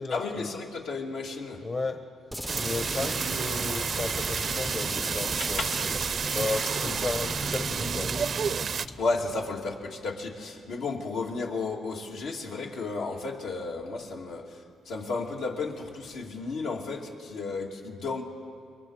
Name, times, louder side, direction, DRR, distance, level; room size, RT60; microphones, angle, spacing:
voice 1, 0.1-1.6 5.4-5.8 6.8-6.9 7.7-7.8 9.0-18.2, left 3 dB, 80° left, -1 dB, 2.6 m, -33 dB
voice 2, 1.6-2.0 2.5-5.6 6.3-8.1, left 3 dB, 35° left, 6 dB, 1.1 m, -33 dB
sound 1, 2.3-9.9, equal, ahead, 0.5 m, -37 dB
sound 2, 2.5-8.9, right 6 dB, 50° right, 0.5 m, -30 dB
27.5 x 22.5 x 5.0 m, 2.4 s
cardioid pair, 90°, 0 cm